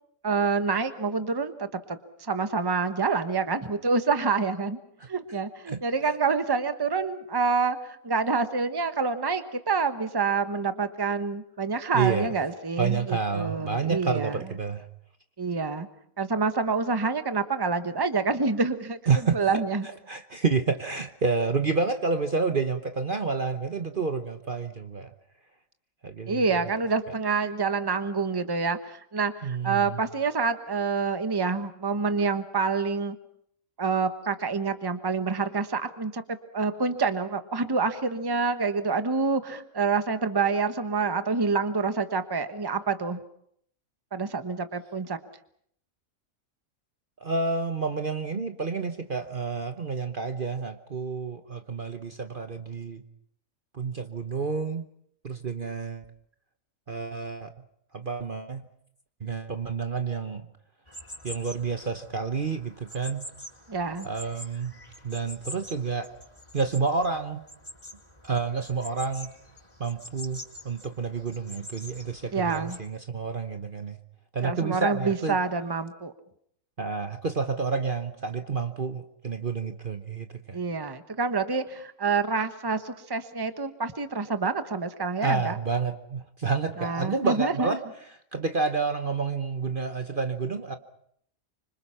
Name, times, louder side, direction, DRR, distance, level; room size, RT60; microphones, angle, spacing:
voice 1, 0.2-4.8 5.1-14.4 15.4-15.9 16.2-19.0 19.3-19.8 26.3-33.2 33.8-36.2 36.5-43.2 44.1-45.2 63.7-64.1 72.3-72.8 74.4-76.1 80.5-85.6 86.8-87.7, right 4 dB, 20° right, 9 dB, 1.2 m, -27 dB
voice 2, 5.7-6.1 11.9-12.3 12.8-14.9 19.1-25.1 26.0-26.6 29.4-30.0 47.2-53.0 53.7-54.9 55.2-56.0 56.9-57.5 57.9-58.6 59.2-60.4 61.2-63.3 64.0-64.8 65.0-66.1 66.5-67.4 68.2-69.3 69.8-70.4 70.6-74.0 74.3-75.4 76.8-80.6 85.2-87.8 88.3-90.8, right 4 dB, 40° right, 7 dB, 1.2 m, -29 dB
sound 1, 60.9-72.8, left 1 dB, 20° left, 6.2 m, -46 dB
26.0 x 25.5 x 5.8 m, 0.67 s
omnidirectional pair, 1.5 m